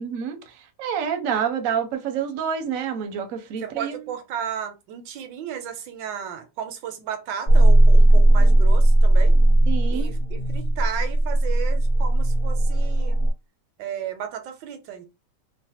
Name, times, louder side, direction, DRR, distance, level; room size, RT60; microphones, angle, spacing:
voice 1, 0.0-4.0 9.7-10.1, right 7 dB, 65° right, 0.9 m, -28 dB
voice 2, 3.6-9.4 9.9-13.2 13.8-15.1, right 8 dB, 90° right, 1.3 m, -34 dB
sound 1, 7.5-13.3, right 1 dB, 60° left, 1.1 m, -17 dB
3.1 x 2.1 x 2.8 m
omnidirectional pair, 2.0 m